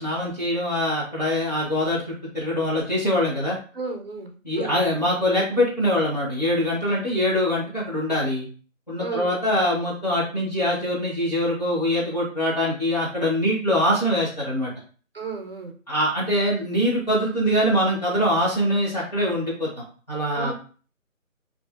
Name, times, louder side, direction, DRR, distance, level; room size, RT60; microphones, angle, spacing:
voice 1, 0.0-3.6 4.4-8.5 8.9-14.7 15.9-20.5, equal, 30° left, -6 dB, 0.8 m, -23 dB
voice 2, 3.7-4.8 9.0-9.3 15.1-15.7 20.3-20.5, right 4 dB, 45° right, 3 dB, 0.5 m, -33 dB
2.5 x 2.4 x 2.4 m, 0.40 s
figure-of-eight pair, 170°, 41 cm